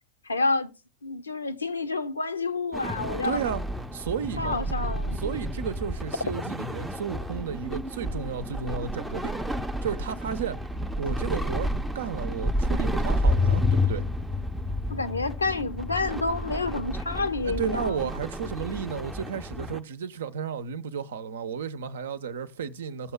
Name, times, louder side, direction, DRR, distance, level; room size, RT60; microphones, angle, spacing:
voice 1, 0.3-0.7 1.0-3.4 4.4-5.2 14.9-18.0, left 3 dB, 75° left, 0.7 m, -29 dB
sound 1, 2.7-19.8, left 1 dB, 5° right, 0.6 m, -30 dB
voice 2, 3.0-3.6 3.9-4.6 5.1-9.3 9.8-10.6 11.0-14.0 17.4-23.1, right 7 dB, 60° right, 0.7 m, -33 dB
15.5 x 6.9 x 2.2 m
figure-of-eight pair, 90°, 0 cm